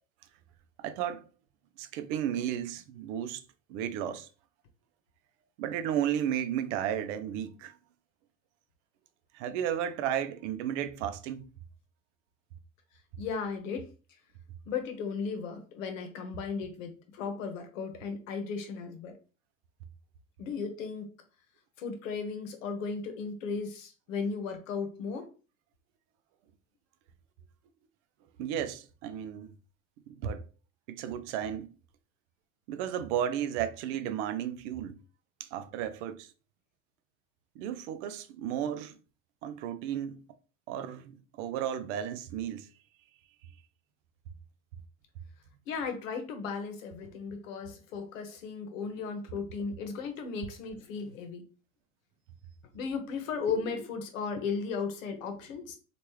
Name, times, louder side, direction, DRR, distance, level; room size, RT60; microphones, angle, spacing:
voice 1, 0.8-1.3 1.8-3.4 3.7-4.3 5.6-7.7 9.3-11.5 28.4-29.5 30.1-30.4 30.9-31.7 32.7-35.0 35.4-36.3 37.6-39.0 39.4-40.2 40.7-42.7, right 10 dB, 60° right, 0.6 m, -33 dB
voice 2, 13.2-13.9 14.7-19.2 20.4-21.1 21.8-25.3 45.7-51.5 52.7-55.8, left 5 dB, 70° left, 0.9 m, -36 dB
3.2 x 2.5 x 3.1 m
hypercardioid pair, 75°, 40 cm